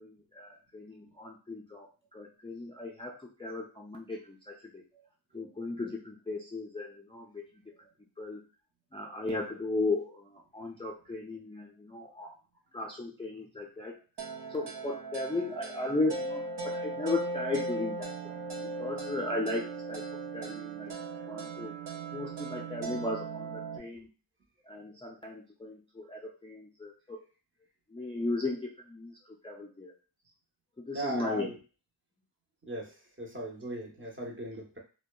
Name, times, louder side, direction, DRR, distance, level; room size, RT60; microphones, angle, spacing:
voice 1, 0.0-4.8 5.3-7.4 8.2-8.4 8.9-12.3 12.7-14.0 14.5-18.4 18.8-20.9 21.3-21.7 22.1-24.1 24.7-27.2 27.9-29.2 29.4-29.9 30.8-31.5, left 2 dB, 15° left, -2 dB, 0.4 m, -36 dB
sound 1, 14.2-23.8, right 3 dB, 65° right, 0.6 m, -38 dB
voice 2, 30.9-31.6 32.7-34.8, right 1 dB, 25° right, -1 dB, 0.7 m, -38 dB
2.7 x 2.1 x 2.2 m, 0.35 s
wide cardioid pair, 50°, 45 cm